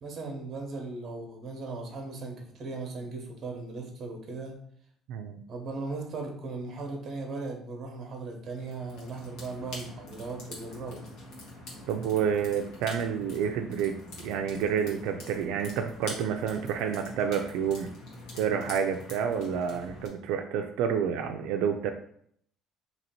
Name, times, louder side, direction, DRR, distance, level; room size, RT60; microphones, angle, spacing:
voice 1, 0.0-4.5 5.5-11.1, right 3 dB, 35° right, 2 dB, 0.8 m, -38 dB
voice 2, 5.1-5.4 11.9-14.0 14.2-17.9 18.3-21.9, right 7 dB, 80° right, 4 dB, 0.3 m, -29 dB
sound 1, 8.6-20.1, left 1 dB, 65° left, 1.2 m, -45 dB
2.9 x 2.8 x 4.2 m, 0.65 s
cardioid pair, 160°, 0 cm